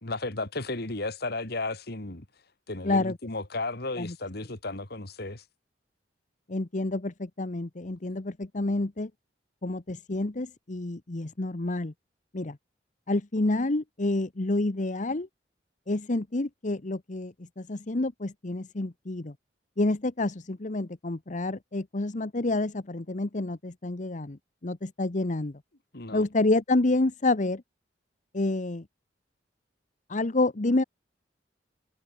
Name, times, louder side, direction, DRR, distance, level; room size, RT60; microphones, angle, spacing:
voice 1, 0.0-2.2 2.7-5.4 25.9-26.2, left 2 dB, 65° left, 2.7 m, -34 dB
voice 2, 2.8-3.2 4.0-4.1 6.5-9.1 9.6-11.9 12.3-12.6 13.1-15.3 15.9-19.3 19.8-25.6 26.1-27.6 28.3-28.8 30.1-30.8, left 2 dB, 45° left, 1.0 m, -28 dB
head